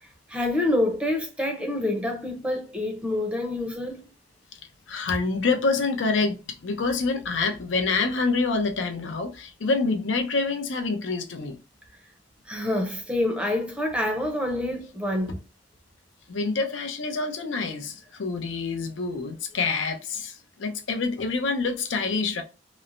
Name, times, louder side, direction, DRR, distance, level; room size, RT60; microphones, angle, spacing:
voice 1, 0.0-4.1 12.5-15.4, left 1 dB, 5° right, 0.5 m, -27 dB
voice 2, 4.9-11.6 16.3-22.4, left 4 dB, 85° left, 0.6 m, -27 dB
3.0 x 2.1 x 2.5 m
head